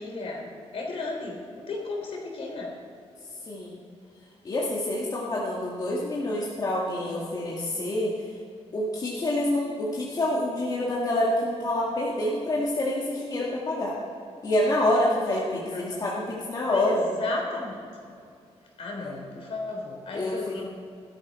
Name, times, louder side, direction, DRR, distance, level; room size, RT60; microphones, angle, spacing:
voice 1, 0.0-2.8 15.7-16.0 16.7-17.8 18.8-20.6, left 3 dB, 60° left, 0 dB, 3.5 m, -34 dB
voice 2, 3.5-3.8 4.4-8.1 8.7-14.0 14.4-17.0 19.0-19.1 20.1-20.6, left 1 dB, 35° left, -5 dB, 1.9 m, -27 dB
17.0 x 12.5 x 4.3 m, 2.3 s
wide cardioid pair, 160°, 11 cm